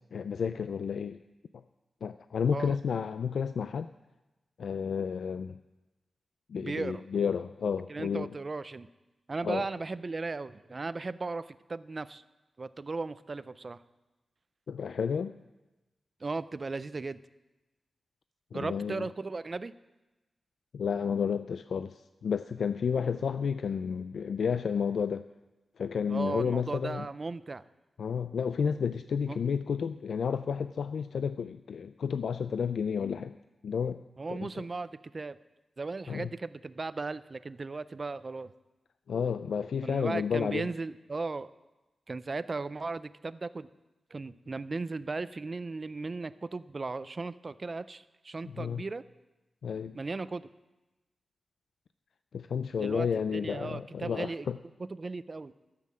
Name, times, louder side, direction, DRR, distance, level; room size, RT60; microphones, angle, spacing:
voice 1, 0.1-1.2 2.0-3.9 4.6-5.6 6.5-8.3 9.4-9.7 14.7-15.4 18.5-19.1 20.7-25.2 25.8-27.1 28.0-33.4 33.6-34.0 34.3-34.6 36.1-36.3 39.1-40.7 48.4-48.8 49.6-50.0 52.3-54.6, left 6 dB, 80° left, 11 dB, 0.3 m, -31 dB
voice 2, 6.6-7.0 7.9-8.9 9.3-12.2 12.6-13.8 16.2-17.2 18.5-19.8 26.1-27.6 29.3-29.4 34.2-35.4 35.8-38.5 39.8-41.5 42.1-43.7 44.1-49.0 49.9-50.5 52.8-53.1 53.3-54.5 54.8-55.5, right 3 dB, 30° right, 15 dB, 0.4 m, -36 dB
13.0 x 7.6 x 7.3 m, 1.1 s
wide cardioid pair, 160°, 0 cm